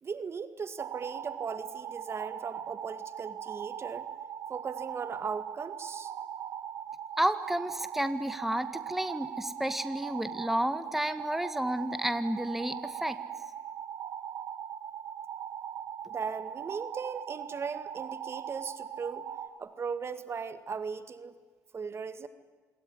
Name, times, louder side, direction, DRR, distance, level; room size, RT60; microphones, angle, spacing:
voice 1, 0.0-4.1 4.5-6.1 16.0-19.2 19.6-21.3 21.7-22.3, right 5 dB, 45° right, 12 dB, 2.0 m, -38 dB
sound 1, 0.8-19.5, right 9 dB, 75° right, 2.9 m, -40 dB
voice 2, 7.2-13.2, right 1 dB, 5° right, 11 dB, 1.8 m, -31 dB
27.0 x 22.5 x 9.8 m, 1.4 s
supercardioid pair, 70°, 6 cm